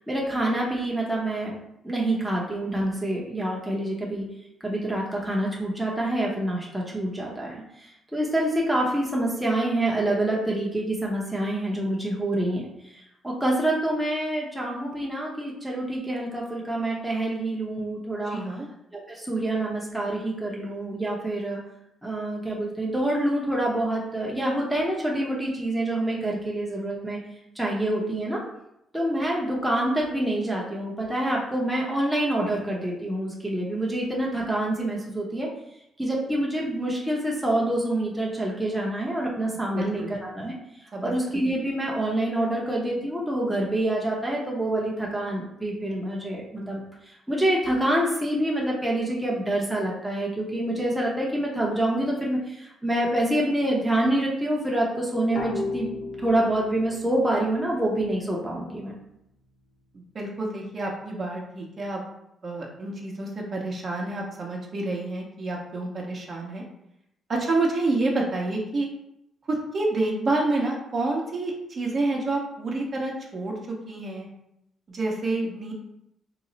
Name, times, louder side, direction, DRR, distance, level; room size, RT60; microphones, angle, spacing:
voice 1, 0.1-1.5 1.8-4.2 4.6-12.6 12.9-18.4 18.9-21.6 22.0-27.2 27.6-28.4 28.9-35.5 36.0-40.6 41.0-55.9 56.2-58.9, right 1 dB, 5° right, -3 dB, 0.7 m, -26 dB
voice 2, 18.3-18.7 39.7-40.1 40.9-41.1 59.9-62.0 62.4-66.6 67.3-68.9 69.5-74.3 74.9-75.7, right 2 dB, 45° right, -1 dB, 0.8 m, -28 dB
sound 1, 55.4-58.8, left 3 dB, 55° left, 0.8 m, -36 dB
3.0 x 2.0 x 3.9 m, 0.80 s
cardioid pair, 90°, 0 cm